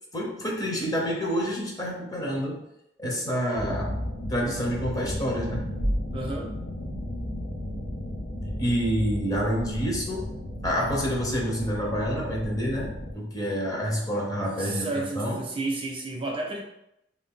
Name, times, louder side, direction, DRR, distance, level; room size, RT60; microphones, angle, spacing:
voice 1, 0.1-2.6 3.0-4.0 4.3-5.8 8.6-10.3 10.6-15.4, equal, 20° left, -2 dB, 0.7 m, -28 dB
sound 1, 3.6-13.1, equal, 50° left, 0.8 m, -33 dB
voice 2, 6.1-6.5 14.4-16.6, right 2 dB, 30° right, -1 dB, 0.5 m, -32 dB
2.7 x 2.5 x 3.5 m, 0.81 s
head